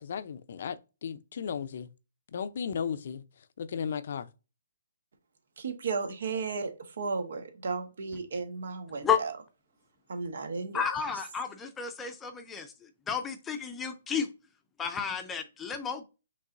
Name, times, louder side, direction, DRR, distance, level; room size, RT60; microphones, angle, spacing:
voice 1, 0.0-1.9 2.3-3.2 3.6-4.3, left 7 dB, 60° left, 0.5 m, -35 dB
voice 2, 5.6-6.7 7.0-9.3 10.1-10.8, right 4 dB, 70° right, 1.1 m, -34 dB
voice 3, 10.7-12.7 13.1-14.3 14.8-16.0, left 7 dB, 10° left, 0.5 m, -31 dB
5.4 x 3.2 x 2.5 m
hypercardioid pair, 150°, 0 cm